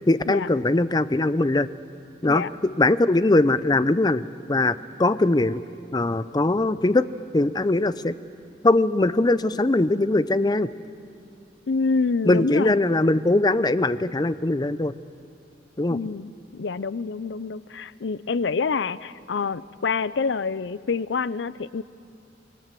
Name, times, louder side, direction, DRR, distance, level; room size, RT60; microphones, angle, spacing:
voice 1, 0.1-1.7 2.2-4.2 4.5-5.6 5.9-7.1 7.3-8.1 8.6-10.7 12.3-14.9 15.8-16.0, left 2 dB, 25° left, 15 dB, 0.5 m, -21 dB
voice 2, 11.7-12.8 15.9-21.8, left 4 dB, 75° left, 18 dB, 0.5 m, -27 dB
26.5 x 20.5 x 7.6 m, 2.4 s
head